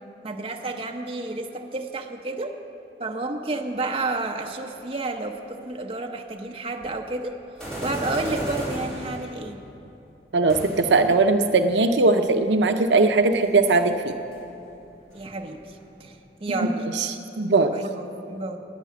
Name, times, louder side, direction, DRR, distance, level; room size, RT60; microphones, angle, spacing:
voice 1, 0.2-2.5 3.0-7.4 7.8-9.6 15.1-16.9 17.7-18.6, right 2 dB, 30° right, 3 dB, 0.8 m, -31 dB
sound 1, 6.8-6.9 7.6-9.4 10.5-11.1 12.6-12.7 13.0-13.1 13.4-13.7 14.2-16.0, right 1 dB, 5° left, 4.1 m, -34 dB
voice 2, 10.3-14.1 17.4-17.7, right 3 dB, 75° right, 7 dB, 0.6 m, -19 dB
11.5 x 10.0 x 8.4 m, 2.8 s
head